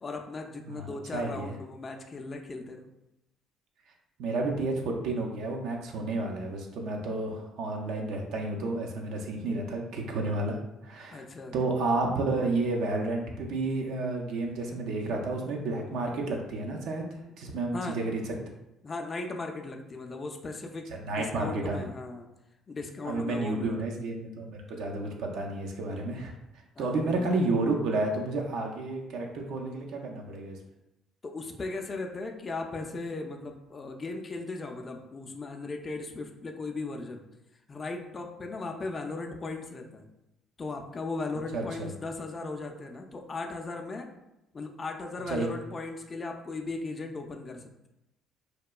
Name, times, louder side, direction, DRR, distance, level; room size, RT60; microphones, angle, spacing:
voice 1, 0.0-2.9 11.1-11.5 17.7-18.0 18.8-22.3 22.7-24.0 26.8-27.3 31.2-37.2 37.7-40.0 40.6-44.1 44.5-47.7, left 3 dB, 35° left, 3 dB, 0.3 m, -37 dB
voice 2, 0.7-1.6 4.2-10.6 10.8-11.2 11.5-18.2 20.9-21.9 23.1-26.3 26.8-30.6 41.5-41.9 45.3-45.5, right 2 dB, 70° right, 1 dB, 0.4 m, -31 dB
2.9 x 2.2 x 2.2 m, 0.89 s
hypercardioid pair, 60°, 0 cm